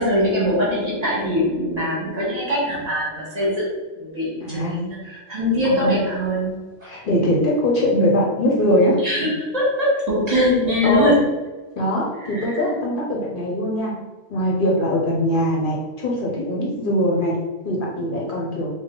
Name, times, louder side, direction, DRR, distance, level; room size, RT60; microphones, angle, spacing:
voice 1, 0.0-3.6 4.0-6.6 9.0-11.2 12.2-12.6, left 1 dB, 40° right, -7 dB, 1.2 m, -22 dB
voice 2, 4.4-4.8 5.3-5.4 5.6-5.9 6.8-9.0 10.8-11.1 11.8-14.0 14.3-17.4 17.6-18.7, equal, 60° left, -2 dB, 0.8 m, -21 dB
3.5 x 2.2 x 3.6 m, 1.2 s
omnidirectional pair, 1.1 m